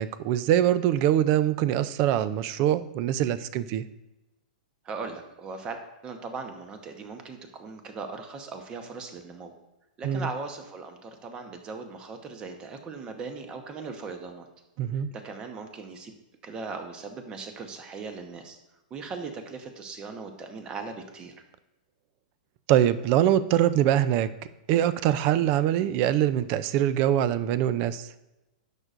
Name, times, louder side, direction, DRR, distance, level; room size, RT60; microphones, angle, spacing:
voice 1, 0.0-3.8 10.0-10.3 14.8-15.1 22.7-24.3 24.7-28.1, right 11 dB, 35° right, 14 dB, 0.4 m, -23 dB
voice 2, 4.8-9.5 10.0-14.5 15.1-16.1 16.4-18.6 18.9-21.3, right 4 dB, 20° right, 6 dB, 0.9 m, -39 dB
10.5 x 6.7 x 2.5 m, 0.98 s
hypercardioid pair, 155°, 5 cm